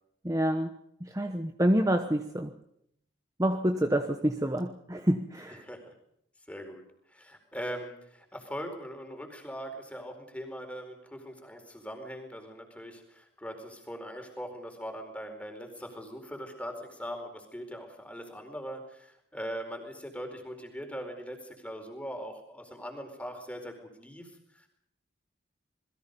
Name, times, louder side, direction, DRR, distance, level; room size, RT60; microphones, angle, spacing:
voice 1, 0.2-2.6 3.4-5.6, right 1 dB, 15° right, 7 dB, 1.0 m, -28 dB
voice 2, 5.6-5.9 6.5-6.8 7.1-24.7, equal, 5° left, 4 dB, 4.5 m, -41 dB
28.0 x 21.5 x 5.4 m, 0.74 s
head